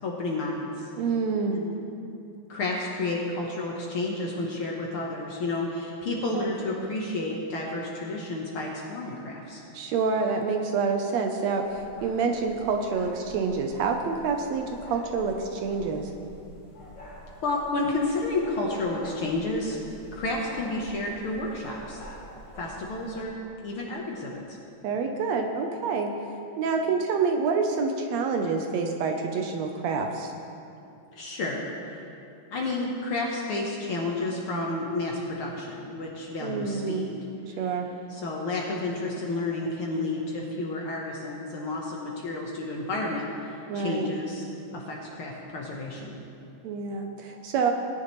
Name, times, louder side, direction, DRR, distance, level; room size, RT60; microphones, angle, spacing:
voice 1, 0.0-0.9 1.5-1.7 2.5-9.6 17.4-19.8 20.1-22.0 22.6-23.3 23.6-24.6 31.1-32.0 32.5-37.1 38.1-43.3 43.7-44.5 44.7-46.2, left 2 dB, 60° left, -2 dB, 1.6 m, -31 dB
voice 2, 1.0-1.6 6.3-6.5 9.7-16.1 24.8-26.1 26.6-30.3 36.4-37.0 37.5-37.9 43.7-44.1 46.6-47.7, right 5 dB, 75° right, 4 dB, 1.8 m, -27 dB
sound 1, 11.6-23.2, left 1 dB, 35° left, 2.6 m, -47 dB
19.0 x 10.0 x 3.1 m, 2.7 s
omnidirectional pair, 3.4 m